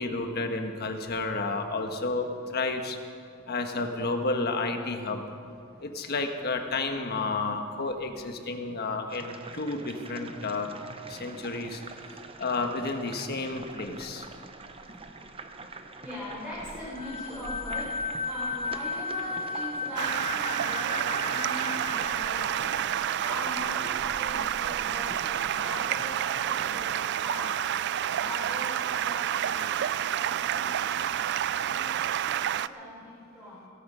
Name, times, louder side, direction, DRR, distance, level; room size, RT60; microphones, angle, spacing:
voice 1, 0.0-3.0 3.5-5.2 5.8-10.7 11.1-11.8 12.4-14.2, left 3 dB, 50° left, 5 dB, 1.4 m, -31 dB
sound 1, 9.1-26.9, right 3 dB, 25° right, 0.8 m, -44 dB
voice 2, 16.0-22.7 23.2-27.7 28.1-31.0 31.5-33.7, left 1 dB, 5° right, -9 dB, 4.5 m, -41 dB
sound 2, 17.0-23.4, left 4 dB, 30° left, 0.5 m, -35 dB
Stream, 20.0-32.7, right 10 dB, 55° right, 0.3 m, -29 dB
17.5 x 14.0 x 5.6 m, 2.4 s
head